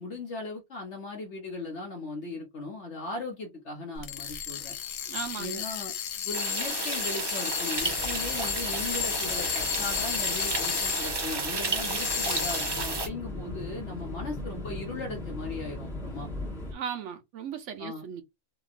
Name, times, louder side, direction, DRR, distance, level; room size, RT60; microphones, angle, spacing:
voice 1, 0.0-4.7 5.4-5.9 6.3-16.3 17.8-18.1, left 3 dB, 55° left, 1.1 m, -38 dB
sound 1, 4.0-11.4 11.8-12.9, left 10 dB, 85° left, 1.1 m, -33 dB
voice 2, 5.1-5.7 16.7-18.2, right 8 dB, 65° right, 0.9 m, -37 dB
sound 2, 6.3-13.1, right 2 dB, 35° right, 0.4 m, -32 dB
sound 3, 7.8-16.7, left 2 dB, ahead, 1.0 m, -40 dB
3.0 x 2.6 x 2.4 m
omnidirectional pair, 1.5 m